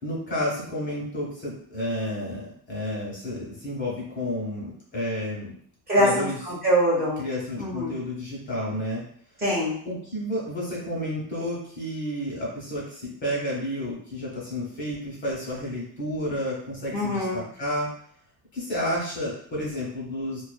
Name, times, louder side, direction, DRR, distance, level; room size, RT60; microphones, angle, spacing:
voice 1, 0.0-5.5 6.0-6.4 7.2-9.0 9.8-17.9 18.5-20.4, left 1 dB, 30° left, -4 dB, 1.0 m, -31 dB
voice 2, 5.9-7.2 7.6-7.9 9.4-9.7 16.9-17.4, equal, 20° right, -6 dB, 1.0 m, -23 dB
2.4 x 2.3 x 2.2 m, 0.62 s
cardioid pair, 120°, 40 cm